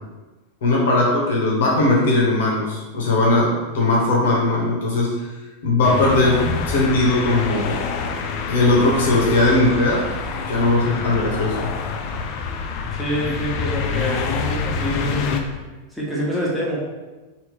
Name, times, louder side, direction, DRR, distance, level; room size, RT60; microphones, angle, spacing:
voice 1, 0.6-5.1 5.6-6.4 6.6-7.8 8.5-10.0 10.5-11.7, left 2 dB, 60° left, -3 dB, 0.8 m, -19 dB
sound 1, 5.8-15.4, left 5 dB, 40° left, 0.3 m, -26 dB
voice 2, 12.9-15.4 15.9-16.8, equal, ahead, -6 dB, 1.0 m, -26 dB
3.4 x 2.5 x 3.2 m, 1.2 s
figure-of-eight pair, 90°, 0 cm